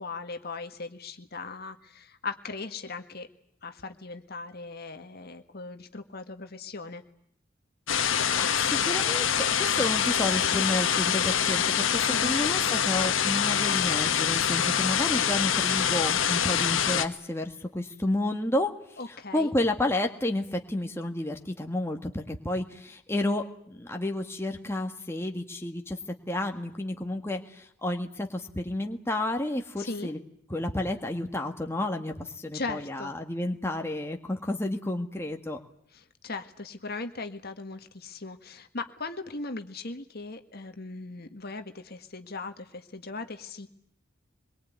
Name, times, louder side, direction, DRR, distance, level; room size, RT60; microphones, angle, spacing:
voice 1, 0.0-3.3 3.6-7.0 12.1-12.4 19.0-19.5 29.8-30.1 32.5-33.1 35.9-43.7, left 3 dB, 50° left, 7 dB, 1.8 m, -38 dB
sound 1, 7.9-17.1, left 8 dB, 80° left, 1.6 m, -25 dB
voice 2, 8.4-18.7 19.1-26.0 26.3-30.2 30.5-35.6, left 1 dB, 15° left, 3 dB, 1.8 m, -31 dB
25.0 x 22.5 x 9.5 m, 0.70 s
head